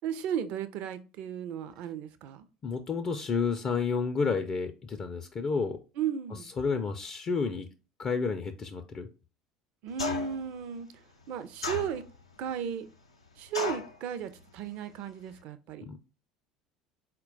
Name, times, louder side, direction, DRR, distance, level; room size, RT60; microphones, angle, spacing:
voice 1, 0.0-2.4 6.0-6.5 9.8-10.9 11.3-12.0 12.4-12.9 13.4-15.9, right 8 dB, 55° right, 0.4 m, -35 dB
voice 2, 2.6-5.8 6.4-7.7 8.0-9.1 15.8-16.0, left 5 dB, 35° left, 0.4 m, -30 dB
sound 1, 10.0-10.5 11.6-12.3 13.5-14.0, left 4 dB, 90° left, 0.5 m, -34 dB
4.2 x 2.2 x 3.8 m
figure-of-eight pair, 65°, 3 cm